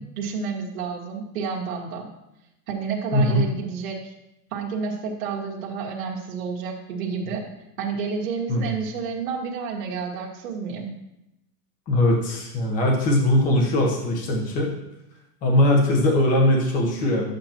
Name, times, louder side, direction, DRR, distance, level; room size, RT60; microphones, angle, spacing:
voice 1, 0.0-2.1 2.7-4.1 4.5-7.4 7.8-10.9, right 5 dB, 60° right, -1 dB, 1.7 m, -30 dB
voice 2, 3.1-3.5 8.5-8.7 11.9-14.7 15.4-17.3, left 1 dB, 15° left, 0 dB, 1.0 m, -20 dB
11.5 x 7.8 x 2.9 m, 0.88 s
supercardioid pair, 175°, 47 cm